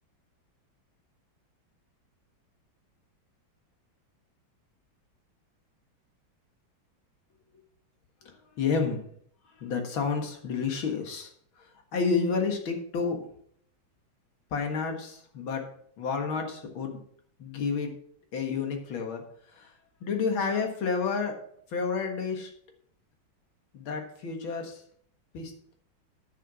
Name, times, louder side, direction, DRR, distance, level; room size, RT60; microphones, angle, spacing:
voice 1, 8.6-9.0 9.6-11.3 11.9-13.2 14.5-15.6 16.0-17.0 17.4-17.9 18.3-19.2 19.6-19.7 20.0-21.3 21.7-22.5 23.7-24.8 25.3-25.7, left 5 dB, 90° left, 4 dB, 2.4 m, -30 dB
9.7 x 5.9 x 6.0 m, 0.63 s
omnidirectional pair, 2.1 m